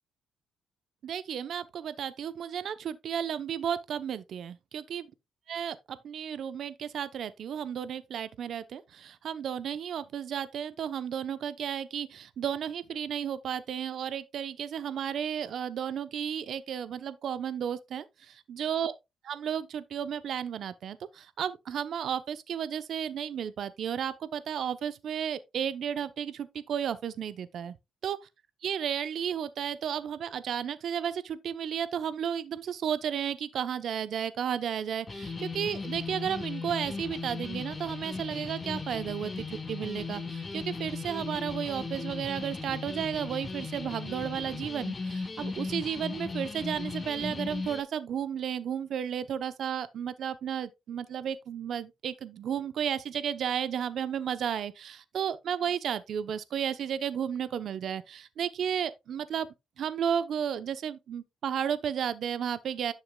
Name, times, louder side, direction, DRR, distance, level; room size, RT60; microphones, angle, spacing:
voice 1, 1.0-5.1 5.5-18.9 19.2-27.8 28.0-28.2 28.6-59.5 59.8-62.9, right 8 dB, 65° right, 0.8 m, -33 dB
sound 1, 35.1-47.8, left 4 dB, 30° left, 2.1 m, -37 dB
11.0 x 6.5 x 2.3 m
cardioid pair, 90°, 0 cm